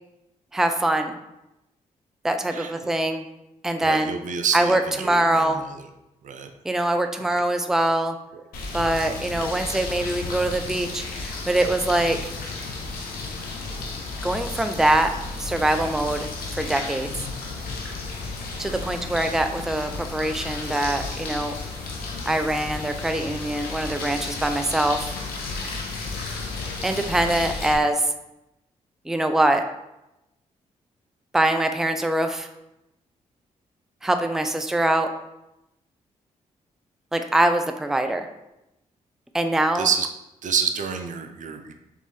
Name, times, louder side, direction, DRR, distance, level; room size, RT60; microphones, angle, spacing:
voice 1, 0.5-1.1 2.2-3.2 3.6-4.1 4.5-5.6 6.6-8.2 8.7-12.3 14.2-15.1 15.4-17.1 18.6-21.5 22.3-25.1 26.8-28.1 29.1-29.6 31.3-32.5 34.0-35.1 37.1-38.3 39.3-39.9, right 1 dB, 5° right, 7 dB, 0.4 m, -23 dB
voice 2, 2.5-2.9 3.8-5.9 6.2-6.5 7.3-7.4 8.3-8.4 8.7-9.0 39.7-40.1 40.4-41.7, right 6 dB, 60° right, 7 dB, 0.5 m, -28 dB
sound 1, 8.5-27.7, left 3 dB, 85° left, 0.7 m, -33 dB
3.7 x 3.6 x 3.2 m, 0.91 s
supercardioid pair, 50°, 15 cm